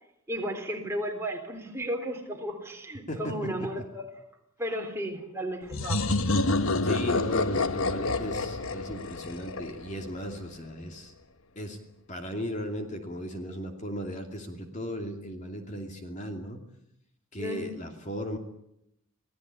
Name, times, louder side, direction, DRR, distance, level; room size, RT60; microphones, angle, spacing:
voice 1, 0.3-4.0 4.6-6.2 17.4-17.7, equal, 10° right, 2 dB, 3.8 m, -34 dB
sound 1, 5.7-10.3, left 2 dB, 70° left, 1.2 m, -28 dB
voice 2, 6.8-11.1 11.6-11.8 12.1-16.6 17.3-18.4, equal, 35° left, 4 dB, 2.6 m, -36 dB
26.0 x 17.0 x 8.5 m, 0.79 s
head